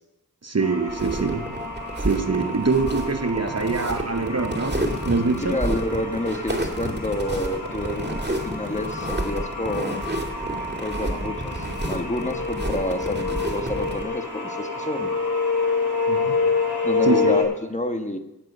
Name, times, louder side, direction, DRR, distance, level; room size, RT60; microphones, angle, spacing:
voice 1, 0.4-1.6 2.0-5.6 16.1-16.5 17.0-17.4, right 4 dB, 45° right, 1.1 m, -24 dB
sound 1, 0.6-17.4, left 4 dB, 90° left, 4.2 m, -29 dB
sound 2, 0.9-14.0, right 1 dB, 25° right, 2.6 m, -30 dB
voice 2, 5.4-10.1 10.8-15.1 16.8-18.2, left 1 dB, 20° left, 1.5 m, -29 dB
17.5 x 7.7 x 6.8 m
wide cardioid pair, 45°, 37 cm